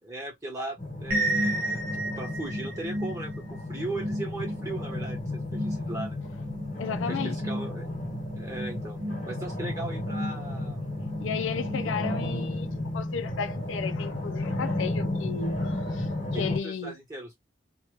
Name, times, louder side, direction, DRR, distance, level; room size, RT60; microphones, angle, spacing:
voice 1, 0.0-6.2 7.1-7.9 8.4-10.9 16.3-17.4, right 2 dB, 15° right, 1.2 m, -38 dB
sound 1, 0.8-16.6, left 1 dB, 40° left, 1.3 m, -33 dB
sound 2, 1.1-12.7, right 1 dB, 50° right, 0.9 m, -34 dB
voice 2, 6.8-7.4 11.2-17.0, left 6 dB, 80° left, 0.4 m, -34 dB
2.9 x 2.3 x 3.2 m
head